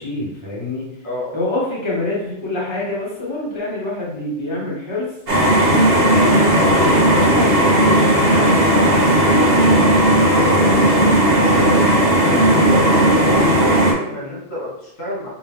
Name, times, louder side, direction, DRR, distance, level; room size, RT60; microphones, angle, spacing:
voice 1, 0.0-0.9 1.3-5.1 6.0-13.5, left 2 dB, 25° left, -5 dB, 1.1 m, -26 dB
voice 2, 1.0-1.3 12.4-13.0 13.7-15.3, equal, 80° left, -6 dB, 2.2 m, -30 dB
sound 1, 5.3-13.9, right 1 dB, 50° right, 1.1 m, -15 dB
5.5 x 2.0 x 3.5 m, 0.82 s
omnidirectional pair, 1.4 m